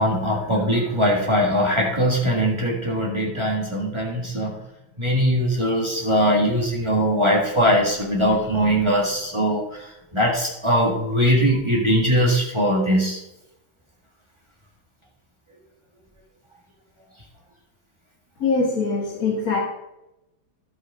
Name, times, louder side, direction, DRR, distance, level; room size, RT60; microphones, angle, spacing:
voice 1, 0.0-4.6 5.0-13.2, equal, 15° right, -2 dB, 1.7 m, -21 dB
voice 2, 18.4-19.6, left 4 dB, 45° left, -3 dB, 1.9 m, -22 dB
11.5 x 6.0 x 5.1 m, 0.92 s
omnidirectional pair, 2.2 m